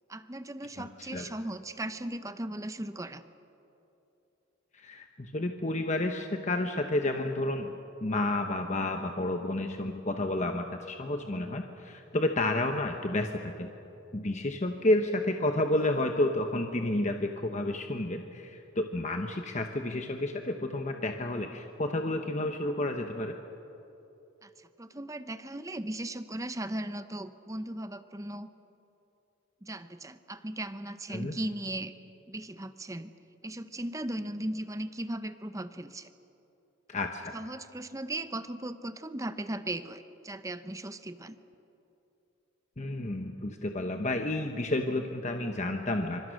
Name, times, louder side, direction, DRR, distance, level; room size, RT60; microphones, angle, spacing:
voice 1, 0.1-3.2 24.4-28.5 29.6-31.9 32.3-33.1 33.4-36.1 37.3-41.4, right 1 dB, 15° right, 11 dB, 0.8 m, -37 dB
voice 2, 0.8-1.3 4.7-7.7 8.0-13.7 14.1-23.3 31.1-31.4 36.9-37.3 42.8-46.3, left 1 dB, 35° left, 5 dB, 1.0 m, -30 dB
27.0 x 25.5 x 6.5 m, 3.0 s
head